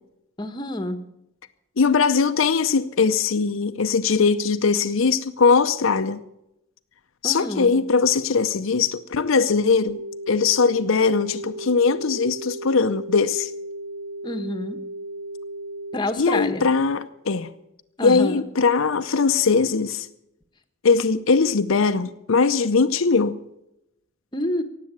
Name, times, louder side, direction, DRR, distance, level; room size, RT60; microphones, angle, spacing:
voice 1, 0.4-1.0 7.2-7.7 14.2-14.8 15.9-16.6 18.0-18.4 24.3-24.6, left 1 dB, 20° left, 1.1 m, -28 dB
voice 2, 1.8-6.2 7.2-10.0 10.3-13.5 16.2-17.5 18.0-20.1 20.8-23.4, left 5 dB, 70° left, 0.7 m, -20 dB
sound 1, 9.9-16.0, right 1 dB, 50° right, 0.8 m, -35 dB
18.0 x 7.7 x 8.8 m
head